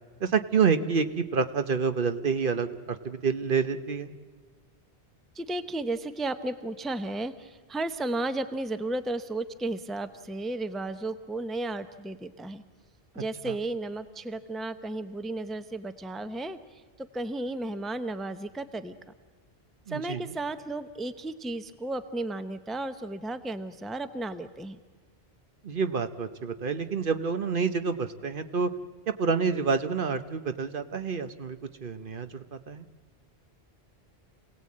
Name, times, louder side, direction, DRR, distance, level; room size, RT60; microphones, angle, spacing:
voice 1, 0.2-4.1 13.4-13.6 19.9-20.3 25.6-28.7 29.1-32.8, right 5 dB, 55° right, 10 dB, 1.0 m, -28 dB
voice 2, 5.3-12.6 13.1-16.6 17.0-19.0 19.9-24.8, right 2 dB, ahead, 10 dB, 0.7 m, -34 dB
27.5 x 18.0 x 8.5 m, 1.5 s
omnidirectional pair, 1.1 m